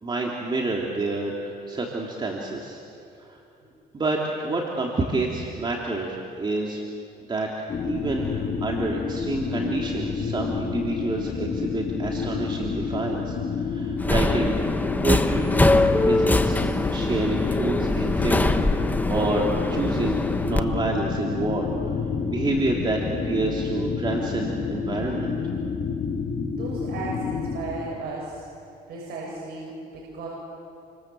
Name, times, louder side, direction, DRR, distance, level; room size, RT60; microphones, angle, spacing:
voice 1, 0.0-2.8 3.3-3.4 3.9-6.8 7.3-7.5 7.8-14.6 15.0-21.9 22.2-25.4, right 2 dB, 30° right, -1 dB, 3.1 m, -28 dB
sound 1, 7.7-27.6, left 5 dB, 45° left, 6.2 m, -29 dB
Subway metro underground, 14.0-20.6, left 2 dB, 10° left, 1.3 m, -23 dB
voice 2, 26.5-28.4 28.9-30.3, right 3 dB, 70° right, -4 dB, 7.6 m, -35 dB
29.5 x 26.5 x 7.7 m, 2.7 s
cardioid pair, 110°, 17 cm